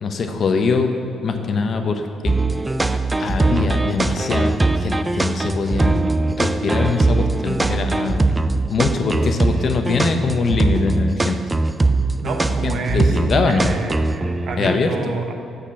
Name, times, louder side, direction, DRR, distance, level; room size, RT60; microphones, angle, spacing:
voice 1, 0.0-0.9 1.2-2.3 3.2-6.0 6.3-8.3 8.7-11.4 12.6-13.7 14.6-14.9, left 4 dB, 55° left, 5 dB, 0.8 m, -22 dB
sound 1, 2.2-14.8, right 2 dB, 15° right, 0.4 m, -20 dB
voice 2, 12.2-13.2 13.5-15.3, right 3 dB, 65° right, 4 dB, 0.9 m, -27 dB
6.6 x 6.0 x 6.9 m, 2.5 s
cardioid pair, 90°, 0 cm